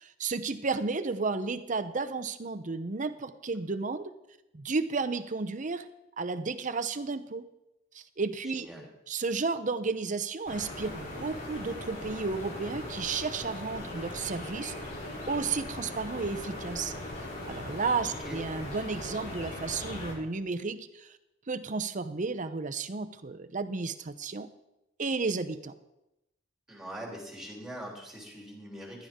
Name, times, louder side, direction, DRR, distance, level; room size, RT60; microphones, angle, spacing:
voice 1, 0.0-4.1 4.5-5.9 6.2-7.4 7.9-8.7 9.1-14.7 15.3-21.1 21.5-24.5 25.0-25.7, right 4 dB, 40° right, 11 dB, 0.7 m, -33 dB
voice 2, 8.4-8.9 18.2-18.4 26.7-29.1, equal, 5° right, -2 dB, 3.3 m, -42 dB
sound 1, 10.5-20.1, left 1 dB, 50° left, 4.4 m, -39 dB
15.5 x 11.5 x 3.7 m, 0.90 s
head